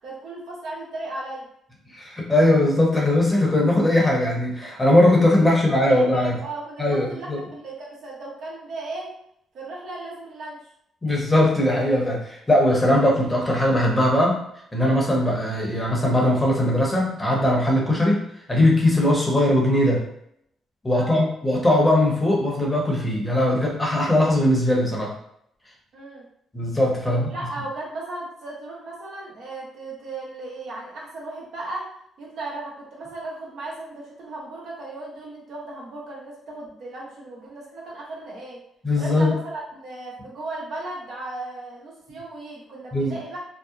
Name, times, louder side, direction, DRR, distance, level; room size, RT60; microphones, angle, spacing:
voice 1, 0.0-1.5 5.4-9.1 9.5-10.6 20.9-21.2 25.9-26.2 27.0-31.9 32.2-38.6 39.0-43.4, right 2 dB, 70° right, -4 dB, 0.9 m, -36 dB
voice 2, 1.9-6.4 6.8-7.4 11.0-14.4 14.7-20.0 20.8-25.1 26.5-27.2 38.8-39.3 42.9-43.1, left 1 dB, 15° left, -2 dB, 0.8 m, -20 dB
2.8 x 2.0 x 2.3 m, 0.72 s
cardioid pair, 90°, 0 cm